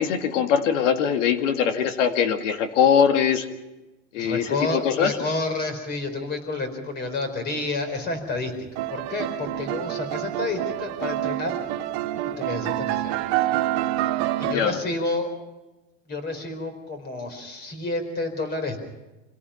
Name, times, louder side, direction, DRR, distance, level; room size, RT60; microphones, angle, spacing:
voice 1, 0.0-3.5 4.1-5.2 14.4-14.8, left 7 dB, 80° left, 7 dB, 2.3 m, -22 dB
voice 2, 4.1-11.6 12.4-13.2 14.4-15.3 16.1-18.8, left 2 dB, 25° left, 8 dB, 4.4 m, -29 dB
sound 1, 8.8-14.5, right 14 dB, 50° right, 1.9 m, -27 dB
27.0 x 17.5 x 5.8 m, 1.1 s
supercardioid pair, 145°, 37 cm